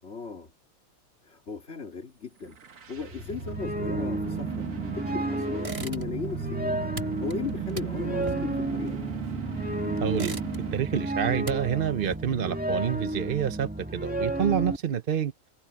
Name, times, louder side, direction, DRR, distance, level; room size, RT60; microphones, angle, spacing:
voice 1, 0.0-0.5 1.2-4.7 4.9-6.8 7.2-9.1, left 5 dB, 50° left, 2.9 m, -37 dB
sound 1, 2.4-11.1, right 9 dB, 65° right, 1.7 m, -36 dB
sound 2, 3.0-14.8, right 1 dB, 5° right, 1.6 m, -32 dB
sound 3, 5.6-6.4 6.6-9.5 10.0-10.9 11.2-12.5, right 2 dB, 25° right, 1.5 m, -40 dB
voice 2, 10.0-10.4 10.7-15.3, right 9 dB, 50° right, 0.8 m, -28 dB
omnidirectional pair, 1.5 m